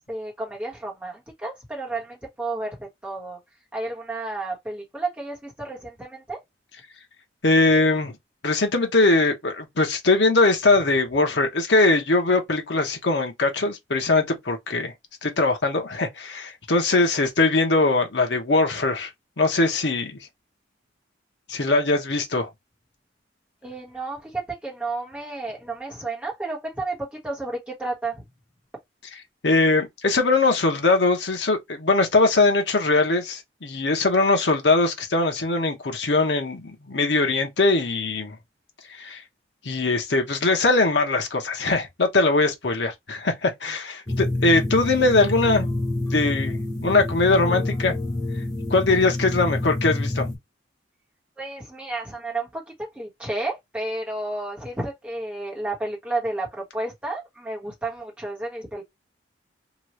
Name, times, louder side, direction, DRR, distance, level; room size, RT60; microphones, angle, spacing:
voice 1, 0.1-3.4 3.7-6.4 23.6-28.1 51.4-52.6 52.9-58.8, right 2 dB, 5° right, 1.2 m, -31 dB
voice 2, 7.4-8.2 8.4-14.9 15.2-19.1 19.4-20.3 21.5-22.5 29.4-38.4 38.9-39.2 39.6-45.7 46.1-48.0 48.7-50.3, left 3 dB, 70° left, 0.9 m, -21 dB
sound 1, 44.1-50.4, left 2 dB, 20° left, 0.7 m, -27 dB
3.0 x 2.4 x 3.0 m
head